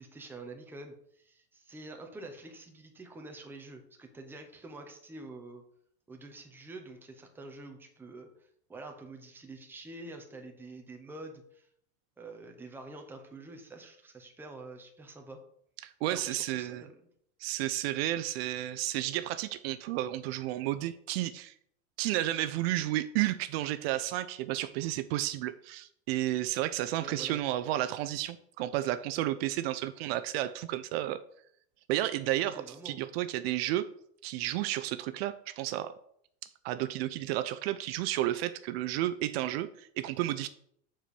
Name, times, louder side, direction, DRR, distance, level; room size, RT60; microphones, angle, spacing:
voice 1, 0.0-5.6 6.1-11.7 12.2-15.4 16.1-16.9 27.0-27.4 32.5-33.1, right 2 dB, 5° right, 3 dB, 0.8 m, -47 dB
voice 2, 15.8-16.8 17.4-21.5 22.0-31.2 31.9-33.9 34.2-35.9 36.4-40.5, right 14 dB, 60° right, 12 dB, 0.5 m, -32 dB
7.5 x 4.5 x 6.9 m, 0.67 s
supercardioid pair, 170°, 35 cm